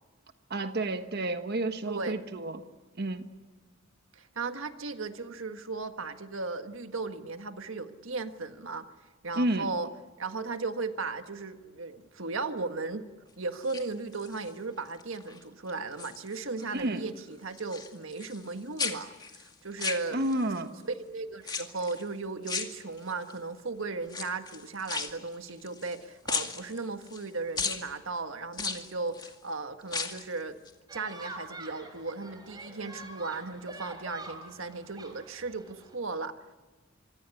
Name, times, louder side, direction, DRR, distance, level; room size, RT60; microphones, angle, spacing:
voice 1, 0.5-2.6 3.0-3.3 9.3-9.7 16.7-17.0 20.1-20.7, right 1 dB, 55° right, 8 dB, 1.4 m, -30 dB
voice 2, 1.8-2.2 4.1-8.9 9.2-9.9 10.2-13.1 13.4-20.3 20.9-30.6 30.9-36.4, right 3 dB, 85° right, 8 dB, 1.6 m, -36 dB
sound 1, 13.5-14.5 15.0-15.4 15.7-16.7 17.0-18.5 18.8-20.6 21.4-22.0 22.4-23.3 24.0-26.0 26.3-27.2 27.6-27.8 28.5-29.3 29.8-30.3 30.6-30.7, left 5 dB, 20° left, 2.2 m, -36 dB
sound 2, 30.9-35.9, right 2 dB, 20° right, 4.5 m, -46 dB
25.5 x 25.0 x 8.4 m, 1.2 s
head